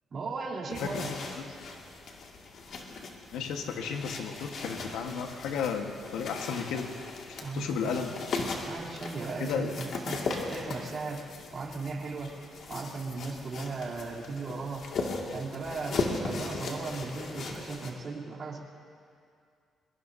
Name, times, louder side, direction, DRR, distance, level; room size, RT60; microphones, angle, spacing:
voice 1, 0.1-1.1 7.4-8.0 8.7-10.2 10.5-11.2 11.5-12.3 12.7-14.8 15.3-18.6, right 4 dB, 45° right, -4 dB, 3.2 m, -37 dB
voice 2, 0.7-1.5 3.3-6.9 7.3-8.3 9.4-9.7, left 6 dB, 85° left, 4 dB, 1.3 m, -34 dB
sound 1, 0.7-17.9, left 3 dB, 60° left, 2.1 m, -38 dB
23.5 x 22.0 x 2.7 m, 2.3 s
cardioid pair, 90°, 0 cm